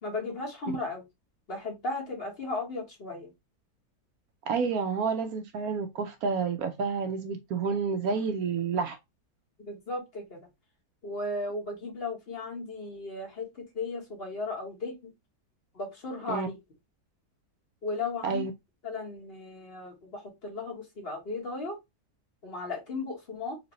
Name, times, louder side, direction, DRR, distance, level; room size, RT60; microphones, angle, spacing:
voice 1, 0.0-1.1 1.5-3.3 9.6-10.4 11.0-15.1 15.7-16.6 17.8-18.4 18.8-21.8 22.4-23.6, left 3 dB, 40° left, 1.5 m, -36 dB
voice 2, 4.5-9.0 16.3-16.5 18.2-18.5, right 5 dB, 70° right, 1.0 m, -29 dB
4.1 x 2.6 x 3.0 m
omnidirectional pair, 1.7 m